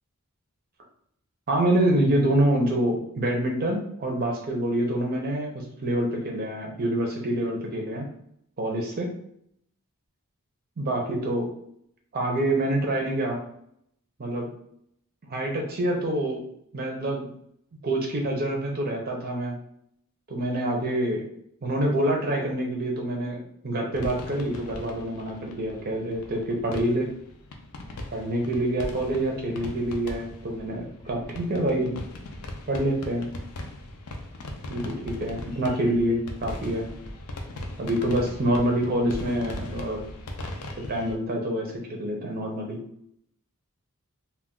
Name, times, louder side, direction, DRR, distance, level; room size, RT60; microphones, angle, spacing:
voice 1, 1.5-8.1 8.6-9.1 10.8-11.5 12.1-13.4 14.2-14.5 15.3-16.4 16.7-17.3 17.8-19.5 20.3-21.3 21.6-27.1 28.1-32.0 32.7-33.3 34.7-36.9 37.8-40.0 40.9-42.8, right 1 dB, 40° right, 1 dB, 0.5 m, -26 dB
sound 1, 23.9-41.1, left 1 dB, 70° left, 0.5 m, -39 dB
2.2 x 2.2 x 3.6 m, 0.71 s
head